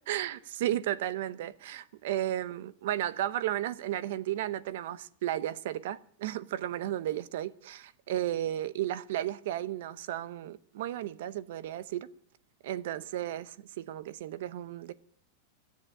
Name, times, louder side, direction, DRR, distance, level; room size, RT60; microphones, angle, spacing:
voice 1, 0.1-12.1 12.6-14.9, right 12 dB, 65° right, 0.7 m, -34 dB
15.5 x 7.4 x 10.0 m
supercardioid pair, 165°, 0 cm